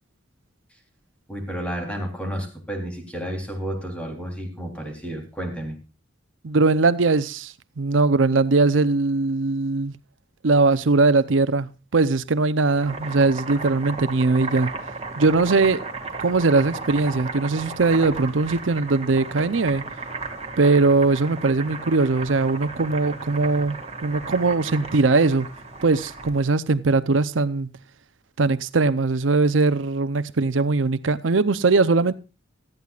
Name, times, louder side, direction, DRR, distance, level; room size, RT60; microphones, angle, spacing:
voice 1, 1.3-5.7, right 1 dB, 5° left, 3.5 m, -31 dB
voice 2, 6.4-9.9 10.4-14.7 15.2-15.8 16.2-19.8 20.6-25.5 25.8-27.7 28.4-32.1, right 3 dB, 90° right, 0.7 m, -20 dB
Boiling, 12.7-26.4, right 3 dB, 35° right, 2.0 m, -35 dB
18.0 x 13.5 x 2.4 m
head